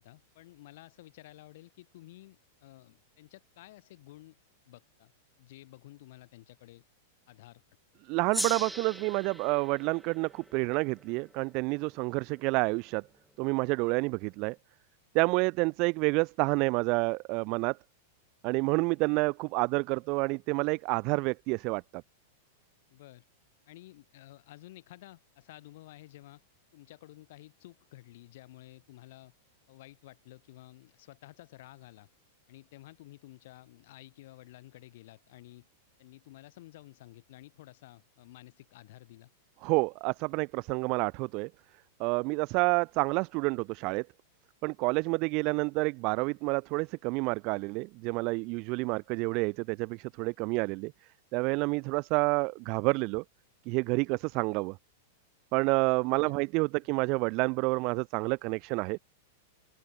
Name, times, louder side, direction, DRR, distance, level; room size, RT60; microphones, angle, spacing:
voice 1, 0.0-4.4 4.7-5.1 5.4-6.8 7.3-7.6 22.9-23.2 23.7-26.4 26.7-29.3 29.7-32.1 32.5-35.7 36.0-39.3 56.3-56.4, left 17 dB, 55° left, 5.6 m, -52 dB
voice 2, 8.1-13.0 13.4-14.6 15.1-17.8 18.4-21.8 39.6-41.5 42.0-44.1 44.6-50.9 51.3-53.2 53.7-54.8 55.5-59.0, right 28 dB, 45° right, 0.6 m, -29 dB
Gong, 8.3-13.1, right 1 dB, ahead, 1.2 m, -41 dB
figure-of-eight pair, 95°, 0 cm